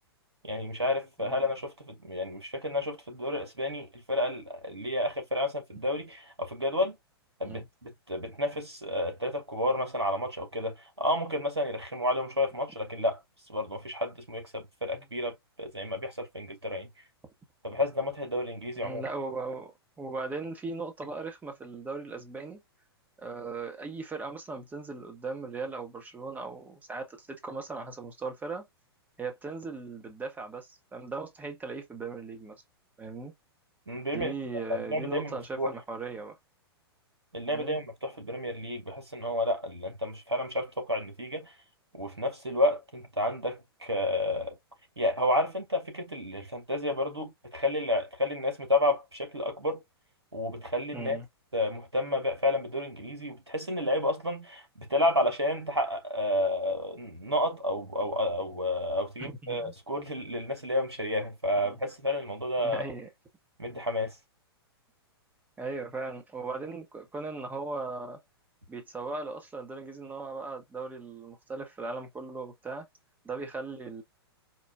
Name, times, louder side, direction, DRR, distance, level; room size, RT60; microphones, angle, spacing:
voice 1, 0.4-6.9 7.4-13.2 13.5-16.9 17.6-19.0 33.9-34.3 34.7-35.7 37.3-41.5 41.9-44.6 45.0-49.8 50.3-51.2 51.5-62.8 63.6-64.1, left 1 dB, 90° right, 1.3 m, -30 dB
voice 2, 18.8-22.6 23.2-28.7 29.2-32.6 33.0-33.3 34.1-36.4 37.5-37.8 50.9-51.3 59.2-59.7 61.6-61.7 62.6-63.1 65.6-68.2 68.7-72.9 73.2-74.0, right 3 dB, 10° right, 1.0 m, -38 dB
4.6 x 2.4 x 2.2 m
figure-of-eight pair, 105°, 13 cm